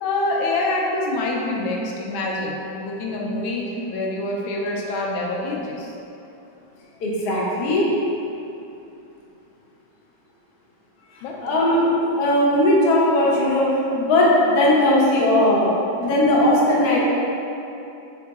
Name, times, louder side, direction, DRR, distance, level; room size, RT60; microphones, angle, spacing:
voice 1, 0.0-6.0 11.2-11.4, left 2 dB, 85° left, -1 dB, 1.4 m, -26 dB
voice 2, 7.0-7.9 11.1-17.0, left 1 dB, 60° left, -5 dB, 1.2 m, -18 dB
3.9 x 3.6 x 3.5 m, 2.8 s
omnidirectional pair, 2.2 m